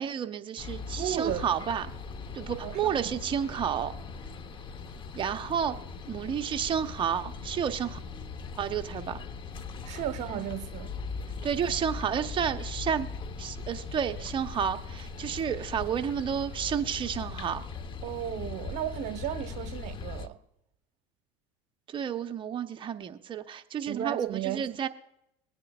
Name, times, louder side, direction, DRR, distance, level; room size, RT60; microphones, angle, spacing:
voice 1, 0.0-1.9 2.3-3.9 5.1-5.8 6.1-8.0 8.6-9.2 11.4-13.1 13.4-17.6 21.9-24.9, right 8 dB, 35° right, 0.9 m, -31 dB
sound 1, 0.6-20.3, left 5 dB, 35° left, 1.0 m, -40 dB
voice 2, 1.0-1.4 2.6-3.1 9.8-10.9 18.0-20.4 23.9-24.8, right 11 dB, 55° right, 1.1 m, -34 dB
22.5 x 9.6 x 2.4 m
supercardioid pair, 100°, 15 cm